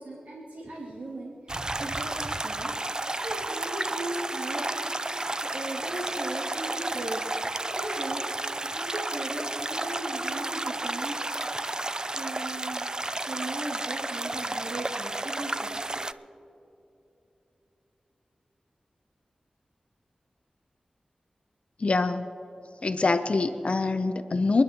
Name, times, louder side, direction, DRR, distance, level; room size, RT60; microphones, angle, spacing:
voice 1, 0.0-5.0 5.4-8.2 8.5-11.3 11.7-11.8 12.1-12.9 13.3-16.1, right 1 dB, 85° right, -6 dB, 2.3 m, -38 dB
sound 1, 1.5-16.1, right 2 dB, 30° right, 0.4 m, -32 dB
voice 2, 21.8-22.2 22.8-24.6, left 3 dB, 55° left, 9 dB, 0.6 m, -24 dB
29.5 x 10.5 x 2.9 m, 2.9 s
cardioid pair, 50°, 2 cm